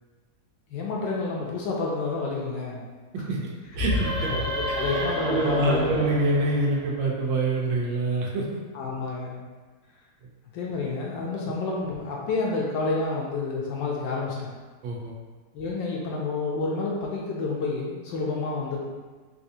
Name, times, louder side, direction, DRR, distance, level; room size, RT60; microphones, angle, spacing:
voice 1, 0.7-2.8 3.4-3.5 4.2-6.0 8.7-9.4 10.5-14.5 15.5-18.8, left 3 dB, 75° left, -3 dB, 1.2 m, -29 dB
sound 1, 3.7-7.3, left 1 dB, 70° right, 0.7 m, -30 dB
voice 2, 3.7-4.3 5.3-8.4 14.8-15.1, right 2 dB, 85° right, -2 dB, 1.4 m, -25 dB
4.1 x 2.6 x 2.7 m, 1.4 s
omnidirectional pair, 2.1 m